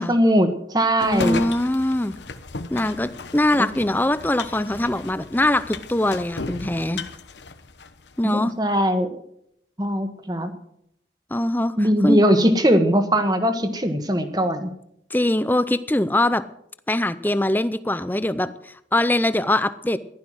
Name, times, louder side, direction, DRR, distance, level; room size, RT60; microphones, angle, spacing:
voice 1, 0.0-1.4 3.6-3.7 8.2-9.2 9.8-10.5 11.8-14.7, equal, 20° right, 8 dB, 1.4 m, -20 dB
sound 1, 1.0-8.2, left 4 dB, 75° left, 1.1 m, -36 dB
voice 2, 1.0-2.2 2.7-7.0 8.2-8.5 11.3-12.2 15.1-16.4 16.9-20.0, left 1 dB, 10° left, 13 dB, 0.6 m, -22 dB
15.0 x 12.0 x 6.3 m, 0.73 s
head